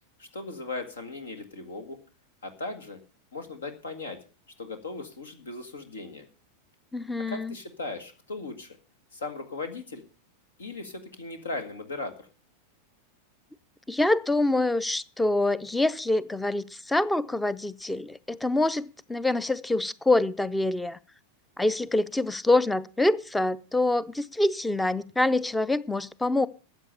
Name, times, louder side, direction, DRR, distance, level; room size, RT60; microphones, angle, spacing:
voice 1, 0.2-2.0 2.4-3.0 3.3-4.2 4.6-6.3 7.3-8.8 9.1-10.0 10.6-12.3, left 3 dB, 70° left, 1.8 m, -37 dB
voice 2, 6.9-7.6 13.9-21.0 21.6-26.5, left 2 dB, 5° left, 0.6 m, -25 dB
14.0 x 8.0 x 6.8 m
figure-of-eight pair, 90°, 0 cm